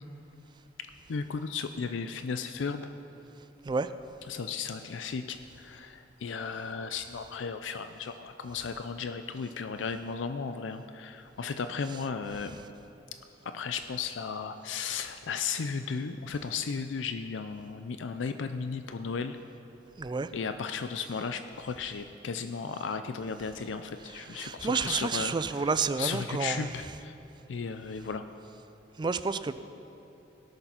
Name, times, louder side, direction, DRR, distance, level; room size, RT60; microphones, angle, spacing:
voice 1, 0.8-2.9 4.3-12.5 13.4-19.4 20.3-25.7 26.0-27.1 27.5-28.2, left 5 dB, 80° left, 9 dB, 0.4 m, -35 dB
voice 2, 20.0-20.3 24.3-26.7 29.0-29.5, right 4 dB, 25° right, 12 dB, 0.4 m, -30 dB
17.5 x 6.8 x 5.7 m, 3.0 s
head